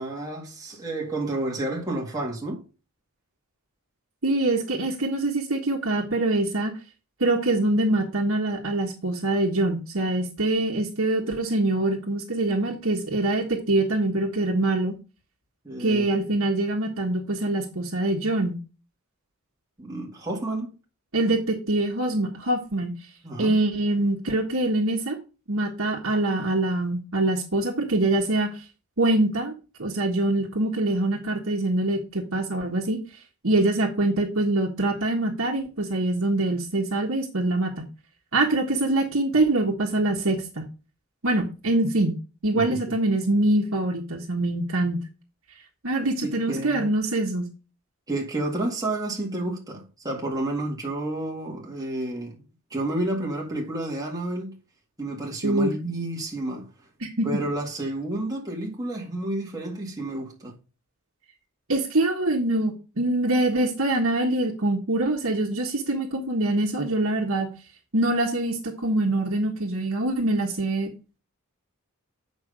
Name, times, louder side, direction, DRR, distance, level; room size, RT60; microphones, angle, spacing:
voice 1, 0.0-2.6 15.6-16.1 19.8-20.7 23.2-23.6 42.5-42.8 46.2-46.9 48.1-52.4 52.7-54.6 55.0-56.7 57.2-60.5, right 1 dB, 15° right, 2.0 m, -30 dB
voice 2, 4.2-6.7 7.2-14.9 15.8-18.6 21.1-22.9 23.4-25.2 25.5-28.5 29.0-29.5 29.8-33.0 33.4-37.9 38.3-40.7 41.2-42.1 42.4-45.0 45.8-47.5 55.4-55.7 57.0-57.3 61.7-67.5 67.9-70.9, right 2 dB, 70° right, 1.5 m, -24 dB
7.8 x 5.3 x 5.1 m
head